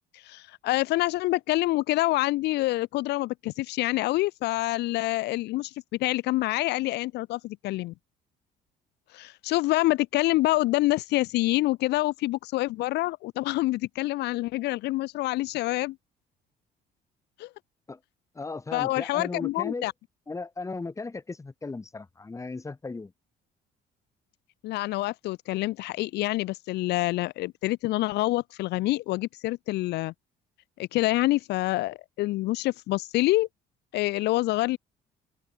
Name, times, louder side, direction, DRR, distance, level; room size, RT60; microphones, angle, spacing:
voice 1, 0.1-5.7 6.0-7.9 9.1-16.0 17.4-17.5 18.7-19.9 24.6-30.1 30.8-33.5 33.9-34.8, left 18 dB, 80° left, 1.2 m, -26 dB
voice 2, 18.3-19.9 20.3-23.1, left 3 dB, 20° left, 2.5 m, -36 dB
open air
cardioid pair, 110°, 17 cm